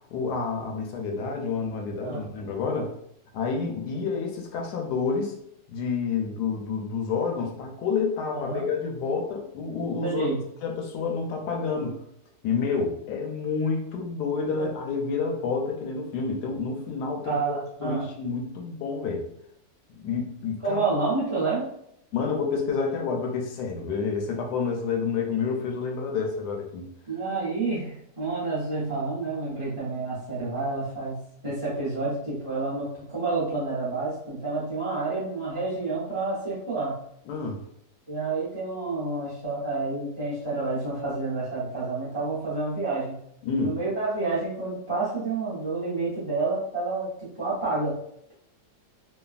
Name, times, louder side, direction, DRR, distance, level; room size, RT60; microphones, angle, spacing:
voice 1, 0.1-2.9 3.3-5.3 5.7-10.3 10.6-12.0 12.4-17.4 17.8-19.3 20.0-20.8 22.1-26.9 37.3-37.6 43.4-43.8, left 5 dB, 75° left, 2 dB, 1.1 m, -29 dB
voice 2, 10.0-10.4 14.6-14.7 17.2-18.1 20.6-21.7 27.1-37.0 38.1-43.2 43.6-47.1 47.3-48.0, right 3 dB, 35° right, -10 dB, 0.5 m, -29 dB
3.1 x 2.2 x 2.4 m, 0.73 s
omnidirectional pair, 1.9 m